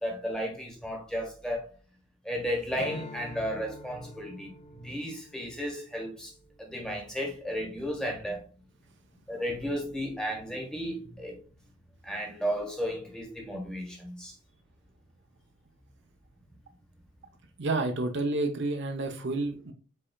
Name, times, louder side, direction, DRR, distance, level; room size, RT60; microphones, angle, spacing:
voice 1, 0.0-1.7 2.2-6.3 6.6-8.5 9.3-11.4 12.0-14.3, equal, 5° left, 1.3 m, -34 dB
Strum, 2.7-7.4, left 2 dB, 30° left, 0.4 m, -48 dB
voice 2, 17.6-19.7, right 2 dB, 55° right, 0.7 m, -29 dB
5.4 x 4.2 x 2.3 m
head